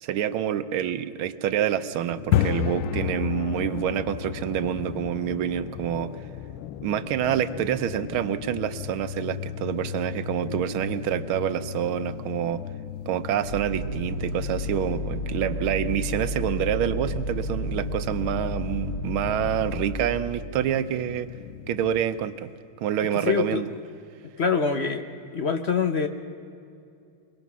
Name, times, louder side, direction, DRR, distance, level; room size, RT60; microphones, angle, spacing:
voice 1, 0.0-6.1 6.8-12.6 13.1-21.3 21.7-22.5 22.8-23.7, right 10 dB, 80° right, 12 dB, 1.6 m, -27 dB
sound 1, 2.1-22.0, left 11 dB, 80° left, 1.5 m, -34 dB
sound 2, 13.4-20.0, left 1 dB, 20° left, 1.5 m, -31 dB
voice 2, 23.3-23.6 24.4-25.0 25.3-26.1, left 6 dB, 55° left, 8 dB, 0.7 m, -24 dB
23.5 x 22.5 x 6.2 m, 2.5 s
omnidirectional pair, 2.3 m